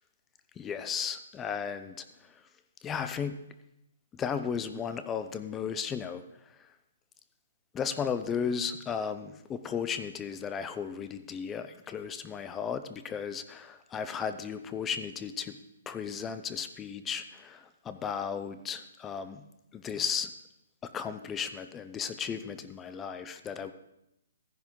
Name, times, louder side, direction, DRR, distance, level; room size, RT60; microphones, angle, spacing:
voice 1, 0.6-2.1 2.8-3.4 4.1-6.2 7.7-15.6 15.9-19.4 19.7-20.3 20.8-23.7, left 7 dB, 10° left, 11 dB, 0.5 m, -35 dB
14.0 x 10.5 x 3.8 m, 0.84 s
hypercardioid pair, 165°, 0 cm